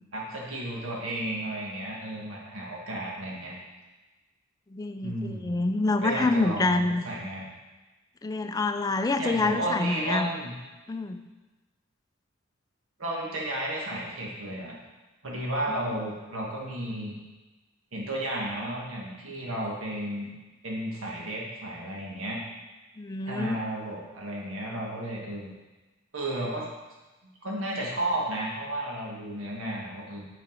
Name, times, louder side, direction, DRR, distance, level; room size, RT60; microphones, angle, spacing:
voice 1, 0.1-3.6 5.0-5.6 6.0-7.5 9.2-10.5 13.0-14.8 15.2-17.2 17.9-20.3 20.6-22.4 23.2-25.5 26.1-26.7 27.4-30.3, right 1 dB, 85° right, -3 dB, 1.3 m, -33 dB
voice 2, 4.7-7.0 8.2-10.3 10.9-11.2 15.7-15.9 23.0-23.6, left 3 dB, 20° left, 8 dB, 0.3 m, -27 dB
6.2 x 5.8 x 4.4 m, 1.2 s
head